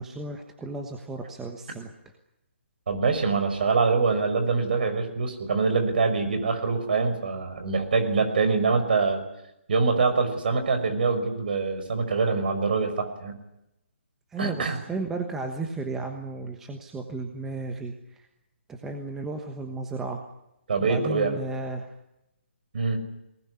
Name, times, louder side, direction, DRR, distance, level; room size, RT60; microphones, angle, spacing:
voice 1, 0.0-1.9 14.3-17.9 18.8-20.2 20.8-21.9, right 3 dB, 5° right, 4 dB, 1.2 m, -34 dB
voice 2, 2.9-9.2 9.7-13.4 14.4-14.8 20.7-21.4 22.7-23.0, right 4 dB, 50° right, 7 dB, 5.7 m, -24 dB
23.0 x 19.5 x 9.9 m, 0.87 s
hypercardioid pair, 175°, 7 cm